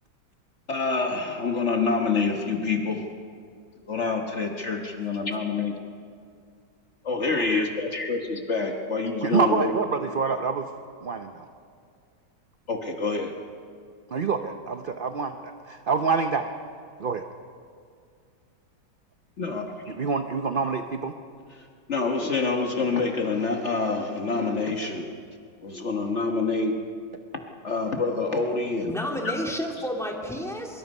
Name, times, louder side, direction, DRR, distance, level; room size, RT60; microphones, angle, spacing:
voice 1, 0.7-3.1 3.9-5.7 7.0-9.7 12.7-13.3 19.4-19.9 21.6-25.1 25.6-26.8 27.6-29.0 29.2-29.3, left 4 dB, 45° left, 3 dB, 1.5 m, -27 dB
voice 2, 7.3-7.7 9.2-10.7 11.0-11.5 14.1-16.5 17.0-17.2 19.9-21.1, right 5 dB, 50° right, 7 dB, 0.6 m, -27 dB
voice 3, 28.9-30.8, equal, ahead, 0 dB, 2.3 m, -31 dB
23.5 x 22.5 x 5.4 m, 2.2 s
omnidirectional pair, 1.8 m